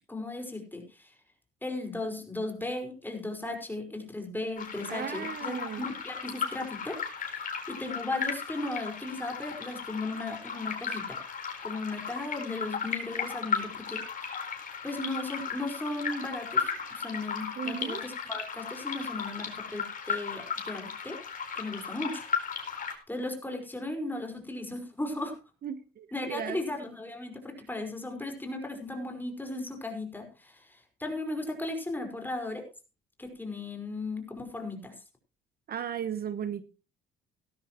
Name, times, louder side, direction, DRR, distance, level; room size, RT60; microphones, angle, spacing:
voice 1, 0.1-1.1 1.6-11.2 11.6-14.0 14.3-14.4 14.8-21.2 21.5-22.3 23.1-25.3 26.1-32.6 33.2-34.9, left 2 dB, 10° left, 3 dB, 5.1 m, -36 dB
sound 1, 4.6-22.9, left 6 dB, 45° left, 4.3 m, -35 dB
voice 2, 4.9-5.9 17.6-18.0 25.6-26.6 35.7-36.7, right 9 dB, 50° right, 13 dB, 1.1 m, -36 dB
17.5 x 12.5 x 3.1 m, 0.31 s
supercardioid pair, 75°, 19 cm